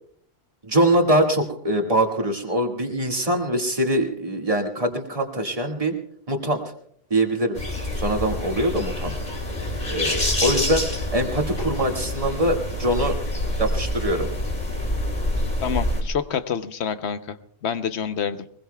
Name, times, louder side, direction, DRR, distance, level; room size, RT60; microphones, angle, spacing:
voice 1, 0.7-5.9 6.3-6.6 7.1-7.6 8.0-9.1 9.9-10.8 11.1-13.2 13.6-14.3, right 1 dB, 30° right, 2 dB, 2.0 m, -23 dB
sound 1, 7.6-16.0, left 1 dB, 40° left, 2.5 m, -27 dB
voice 2, 15.6-17.4 17.6-18.5, left 7 dB, 75° left, 11 dB, 1.1 m, -27 dB
23.0 x 21.0 x 2.3 m, 0.63 s
omnidirectional pair, 1.2 m